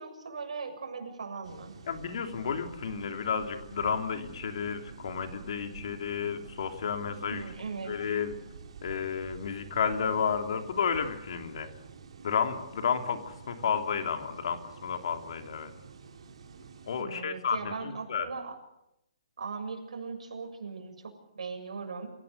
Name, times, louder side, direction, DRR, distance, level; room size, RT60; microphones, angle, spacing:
voice 1, 0.0-1.7 7.3-7.9 17.0-18.5 19.4-22.1, right 4 dB, 80° right, 5 dB, 7.0 m, -39 dB
sound 1, 1.4-17.0, right 6 dB, 55° right, 4.3 m, -49 dB
voice 2, 1.9-7.5 7.8-8.3 8.8-11.7 12.2-15.7 16.9-18.3, left 6 dB, 55° left, 6 dB, 3.1 m, -32 dB
28.0 x 16.5 x 8.2 m, 0.83 s
hypercardioid pair, 165°, 4 cm